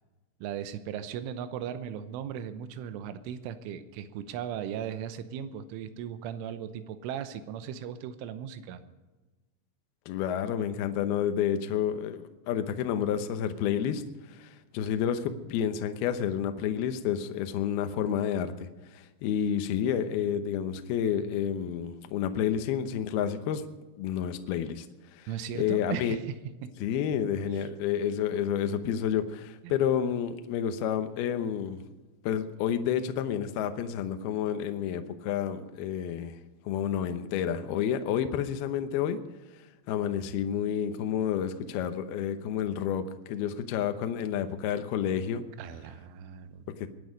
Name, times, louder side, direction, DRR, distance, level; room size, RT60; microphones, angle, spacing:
voice 1, 0.4-8.8 25.3-26.7 27.5-27.7 29.6-29.8 45.6-46.9, right 9 dB, 80° right, 11 dB, 3.3 m, -37 dB
voice 2, 10.1-14.0 14.3-23.6 24.0-24.9 25.1-25.3 25.6-26.2 26.8-31.8 32.2-36.4 36.7-39.2 39.9-45.4 46.7-46.9, left 9 dB, 80° left, 9 dB, 2.2 m, -30 dB
22.5 x 9.6 x 5.2 m, 1.2 s
omnidirectional pair, 5.8 m